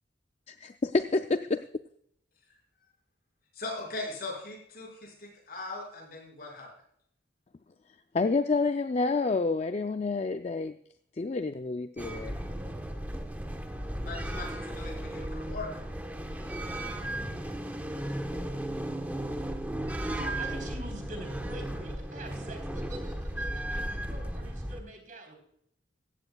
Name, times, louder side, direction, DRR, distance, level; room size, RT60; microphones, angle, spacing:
voice 1, 0.5-1.7 8.1-10.8 11.2-12.4, left 3 dB, 35° left, 9 dB, 0.4 m, -28 dB
voice 2, 3.6-6.7 14.0-15.8, left 2 dB, 50° left, -1 dB, 5.4 m, -39 dB
sound 1, 12.0-24.8, right 1 dB, 10° right, 1.1 m, -35 dB
voice 3, 20.2-25.3, right 1 dB, 45° right, 4 dB, 3.8 m, -45 dB
16.0 x 15.0 x 2.3 m, 0.68 s
head